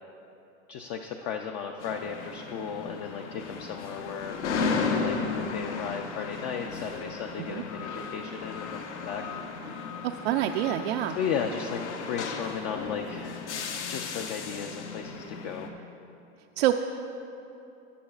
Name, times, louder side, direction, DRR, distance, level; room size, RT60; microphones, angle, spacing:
voice 1, 0.7-4.4 4.6-9.2 11.1-11.8 12.1-15.7, left 7 dB, 40° left, 4 dB, 0.4 m, -35 dB
sound 1, 1.8-15.7, left 4 dB, 85° left, 1.1 m, -35 dB
voice 2, 10.0-11.2 15.7-15.8 16.6-16.7, right 13 dB, 65° right, 4 dB, 0.5 m, -27 dB
17.0 x 8.4 x 2.4 m, 2.9 s
supercardioid pair, 135°, 34 cm